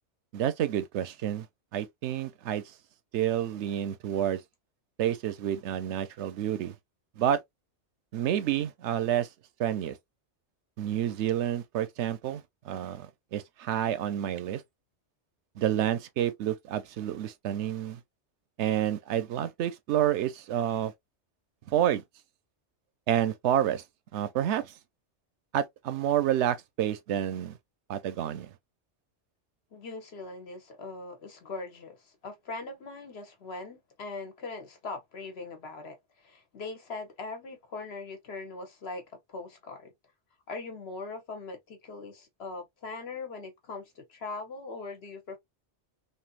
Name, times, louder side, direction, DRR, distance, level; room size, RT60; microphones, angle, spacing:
voice 1, 0.3-1.5 1.7-2.7 3.1-4.4 5.0-6.7 7.2-7.4 8.1-9.3 9.6-10.0 10.8-14.6 15.6-18.0 18.6-20.9 21.7-22.0 23.1-23.8 24.1-24.7 25.5-27.6 27.9-28.5, right 11 dB, 75° right, 0.9 m, -29 dB
voice 2, 29.7-39.9 40.5-45.4, left 3 dB, 65° left, 1.1 m, -41 dB
3.3 x 2.6 x 2.3 m
omnidirectional pair, 1.2 m